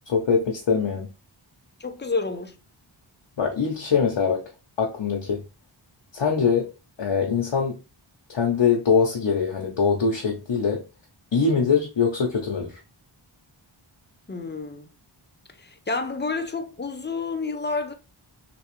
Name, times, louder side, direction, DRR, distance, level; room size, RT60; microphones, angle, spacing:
voice 1, 0.1-1.1 3.4-4.4 4.8-5.4 6.1-6.7 7.0-7.8 8.3-10.8 11.3-12.7, left 5 dB, 65° left, 0.8 m, -23 dB
voice 2, 1.8-2.6 14.3-14.9 15.6-17.9, left 3 dB, 20° left, 0.6 m, -29 dB
3.3 x 3.0 x 3.0 m
wide cardioid pair, 55°, 49 cm